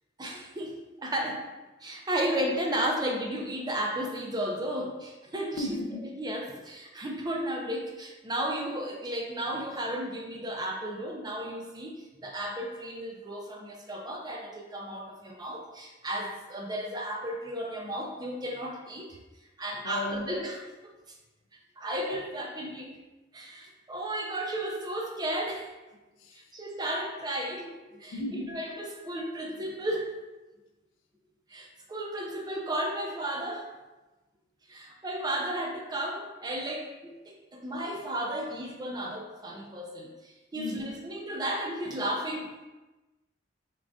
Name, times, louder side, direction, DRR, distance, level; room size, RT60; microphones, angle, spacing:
voice 1, 0.2-1.4 1.8-5.7 6.2-19.2 19.6-20.9 21.8-23.0 23.3-25.7 26.3-30.2 31.5-33.7 34.7-42.5, right 1 dB, 20° right, 1 dB, 0.5 m, -34 dB
voice 2, 5.6-6.1 19.8-20.3 26.2-26.4 28.1-28.6 40.6-40.9, left 1 dB, 85° left, 4 dB, 0.5 m, -35 dB
3.7 x 3.6 x 2.3 m, 1.1 s
head